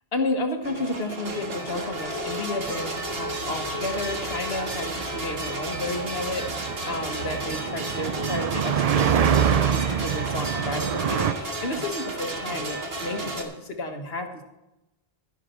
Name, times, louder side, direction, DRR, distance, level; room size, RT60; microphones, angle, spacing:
voice 1, 0.1-14.4, left 2 dB, 75° left, 5 dB, 1.7 m, -32 dB
sound 1, 0.6-13.4, right 1 dB, 70° right, 1.8 m, -32 dB
sound 2, 2.8-11.3, right 8 dB, 50° right, 0.5 m, -26 dB
12.0 x 11.0 x 4.4 m, 0.96 s
omnidirectional pair, 1.0 m